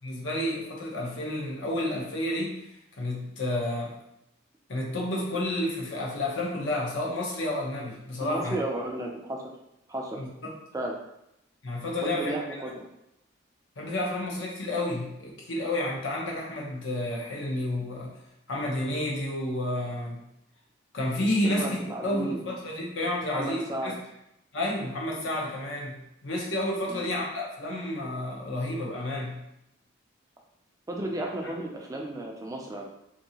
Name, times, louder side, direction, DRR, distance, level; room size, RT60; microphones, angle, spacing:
voice 1, 0.0-2.6 3.0-3.9 4.7-8.6 10.2-10.3 11.6-12.3 13.8-18.1 18.5-20.2 20.9-23.9 24.5-29.4 31.4-31.5, left 1 dB, 65° left, -2 dB, 0.8 m, -30 dB
voice 2, 8.2-9.4 9.9-10.2 10.7-11.0 12.0-12.9 21.4-22.5 23.3-24.0 26.9-27.1 30.9-32.9, right 1 dB, 15° right, 0 dB, 0.4 m, -33 dB
2.7 x 2.7 x 2.8 m, 0.82 s
head